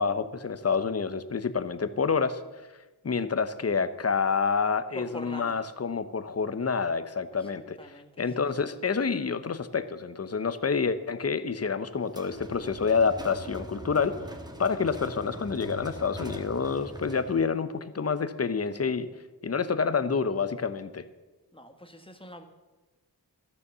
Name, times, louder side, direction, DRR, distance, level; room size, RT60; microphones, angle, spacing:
voice 1, 0.0-2.4 3.0-7.8 8.2-14.1 14.6-19.1 19.4-21.0, left 5 dB, 35° left, 13 dB, 0.8 m, -28 dB
voice 2, 4.9-5.6 7.8-8.1 21.5-22.4, equal, 15° left, 6 dB, 1.4 m, -43 dB
sound 1, 12.1-17.5, right 1 dB, 10° right, 1.3 m, -42 dB
13.0 x 6.9 x 6.7 m, 1.2 s
wide cardioid pair, 60°, 40 cm